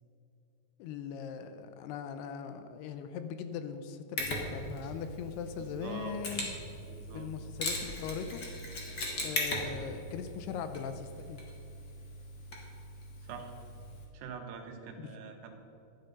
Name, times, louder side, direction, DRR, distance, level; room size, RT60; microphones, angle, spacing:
voice 1, 0.8-6.5 7.1-8.4 9.2-11.4 15.0-15.1, left 7 dB, 85° left, 9 dB, 2.6 m, -40 dB
Mechanisms, 4.2-14.0, left 2 dB, 55° left, 1.1 m, -39 dB
voice 2, 5.8-6.1 6.9-7.3 13.2-13.5 14.1-15.5, right 5 dB, 80° right, 4 dB, 3.3 m, -44 dB
12.0 x 10.0 x 5.3 m, 2.9 s
omnidirectional pair, 4.8 m